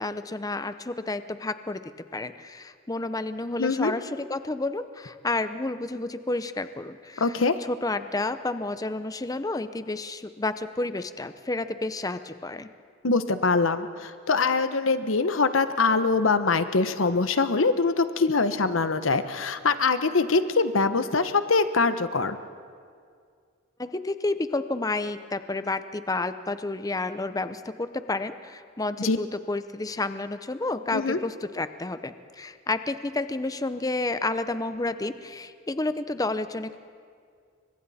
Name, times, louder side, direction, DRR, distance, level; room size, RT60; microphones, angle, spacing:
voice 1, 0.0-1.8 2.1-7.4 7.7-12.7 23.8-36.8, left 2 dB, 20° left, 11 dB, 0.6 m, -30 dB
voice 2, 3.6-3.9 7.2-7.5 13.0-22.4 29.0-29.2 30.9-31.2, left 4 dB, 85° left, 11 dB, 1.0 m, -23 dB
30.0 x 24.5 x 4.2 m, 2.2 s
head